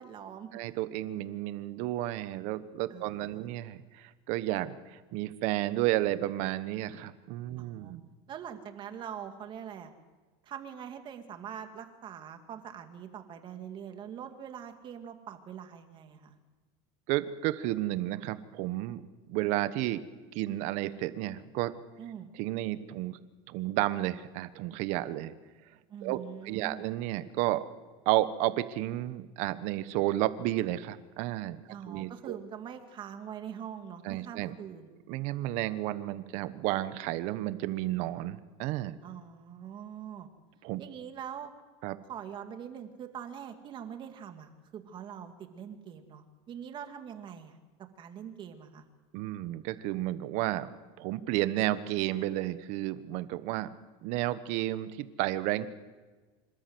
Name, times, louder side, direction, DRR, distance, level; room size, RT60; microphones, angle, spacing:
voice 1, 0.0-0.5 2.9-3.5 7.6-7.9 8.3-9.9 10.4-16.4 22.0-22.3 25.9-26.8 31.7-34.9 39.0-40.3 40.8-41.5 42.1-47.6 48.0-48.8, right 8 dB, 35° right, 6 dB, 2.2 m, -43 dB
voice 2, 0.5-8.0 17.1-19.0 19.3-20.0 20.3-21.7 22.4-23.2 23.5-25.3 26.0-26.2 26.4-27.6 28.0-31.6 31.9-32.4 34.0-34.5 35.1-38.9 40.6-40.8 41.8-41.9 49.1-50.7 51.0-53.7 54.0-55.7, right 15 dB, 60° right, 13 dB, 1.2 m, -32 dB
26.5 x 13.0 x 8.0 m, 1.3 s
supercardioid pair, 130°, 14 cm